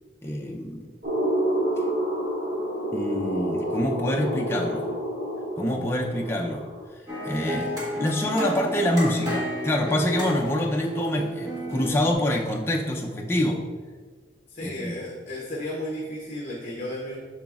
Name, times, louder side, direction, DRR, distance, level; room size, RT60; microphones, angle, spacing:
voice 1, 0.2-0.8 2.9-4.9 5.6-6.6 7.2-13.6 14.6-14.9, left 1 dB, 15° left, -1 dB, 0.5 m, -26 dB
sound 1, 1.0-6.8, right 1 dB, 60° right, 1.7 m, -28 dB
sound 2, 7.1-12.1, equal, 20° right, 1.3 m, -32 dB
voice 2, 14.5-17.2, left 1 dB, 40° left, -3 dB, 0.8 m, -33 dB
7.2 x 6.1 x 2.4 m, 1.5 s
head